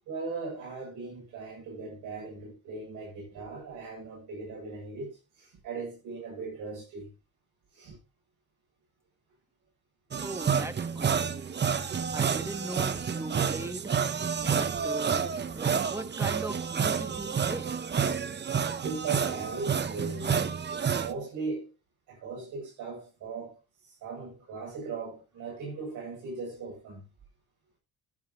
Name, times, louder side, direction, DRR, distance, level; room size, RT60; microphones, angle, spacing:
voice 1, 0.1-5.1 5.4-7.1 7.7-8.0 18.8-20.4 20.9-21.7 22.1-23.6 24.0-27.0, right 4 dB, 90° right, 7.8 m, -38 dB
sound 1, 10.1-21.1, right 6 dB, 35° right, 0.9 m, -29 dB
voice 2, 10.2-11.2 12.1-13.9 14.4-17.7, right 1 dB, 10° right, 1.4 m, -39 dB
13.0 x 10.5 x 3.0 m
cardioid pair, 90°, 30 cm